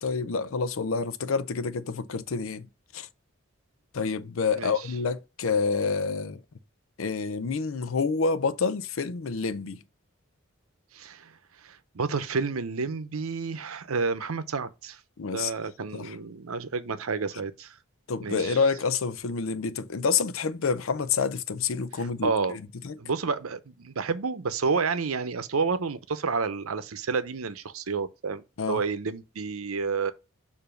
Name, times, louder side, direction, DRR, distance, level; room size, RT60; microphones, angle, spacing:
voice 1, 0.0-2.7 2.9-3.1 3.9-6.4 7.0-9.8 15.2-15.5 15.9-16.2 18.1-22.9 28.6-28.8, left 5 dB, 80° left, 0.5 m, -28 dB
voice 2, 4.6-4.9 10.9-11.3 11.6-15.0 15.3-17.8 18.2-18.6 22.0-22.6 23.0-30.1, right 4 dB, 90° right, 0.7 m, -30 dB
6.9 x 2.7 x 5.1 m
head